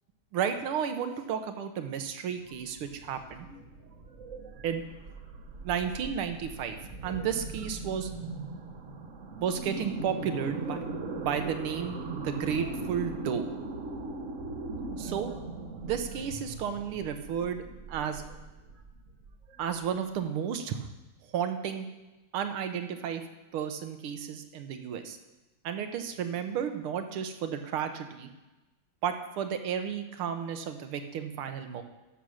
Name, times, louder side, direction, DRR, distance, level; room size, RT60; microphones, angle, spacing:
voice 1, 0.3-3.5 4.6-4.8 5.6-6.8 7.0-8.1 9.4-10.8 11.2-13.4 15.0-15.3 15.8-18.2 19.6-20.9 21.3-21.9 22.3-23.2 23.5-25.2 25.6-28.3 29.0-31.8, right 8 dB, 80° right, 7 dB, 1.7 m, -32 dB
sound 1, 2.3-20.1, right 3 dB, 45° right, 1.1 m, -40 dB
12.5 x 7.0 x 6.3 m, 1.1 s
omnidirectional pair, 2.3 m